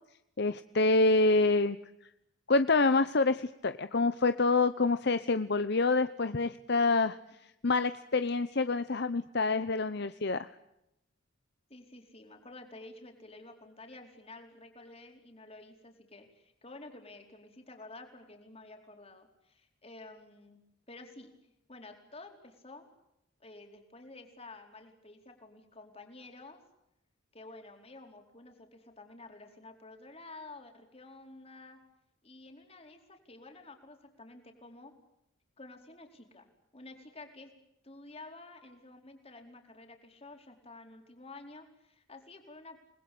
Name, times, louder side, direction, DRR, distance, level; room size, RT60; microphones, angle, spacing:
voice 1, 0.4-1.8 2.5-7.2 7.6-10.5, left 3 dB, 60° left, 11 dB, 0.9 m, -27 dB
voice 2, 11.7-20.6 20.9-21.3 21.7-22.9 23.4-26.6 27.3-31.8 32.2-34.9 35.6-36.5 36.7-37.5 37.8-42.8, left 2 dB, 30° left, 4 dB, 4.5 m, -51 dB
29.0 x 20.5 x 8.6 m, 0.84 s
head